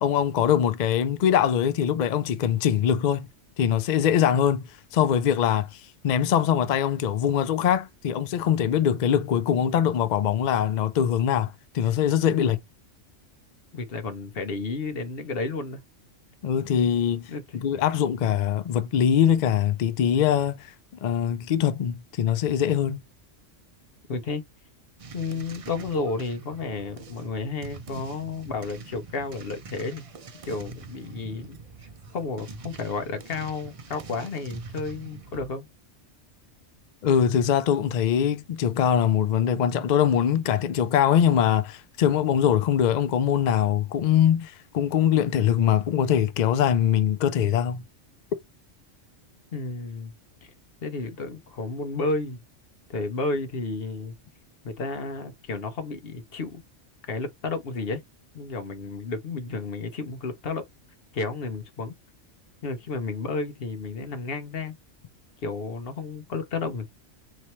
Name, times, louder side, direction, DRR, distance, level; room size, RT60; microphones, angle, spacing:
voice 1, 0.0-3.3 3.6-4.6 4.9-12.6 16.4-20.7 21.0-23.0 37.0-47.8, left 9 dB, 75° left, 0.4 m, -23 dB
voice 2, 13.7-15.8 17.3-17.6 24.1-24.4 25.1-30.0 30.4-31.6 32.1-35.7 49.5-50.1 50.4-50.5 50.8-52.4 52.9-54.1 54.6-56.6 57.1-58.0 58.3-60.6 61.1-61.9 62.6-64.8 65.4-66.9, left 3 dB, 55° left, 1.0 m, -32 dB
sound 1, 25.0-35.5, right 4 dB, 45° right, 0.5 m, -44 dB
4.1 x 3.1 x 3.0 m
omnidirectional pair, 1.3 m